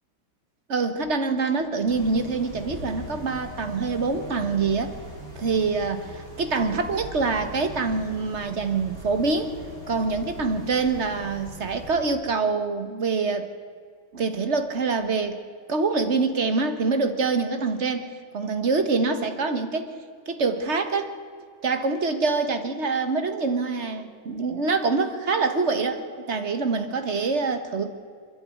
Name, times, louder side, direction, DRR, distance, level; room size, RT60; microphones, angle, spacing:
voice 1, 0.7-4.9 5.3-9.5 9.9-13.5 14.1-15.4 15.7-18.1 18.3-19.9 20.3-21.1 21.6-27.9, right 4 dB, 40° right, 9 dB, 1.5 m, -25 dB
sound 1, 1.9-12.0, equal, 80° right, 8.3 m, -40 dB
27.0 x 10.5 x 9.5 m, 2.1 s
omnidirectional pair, 2.1 m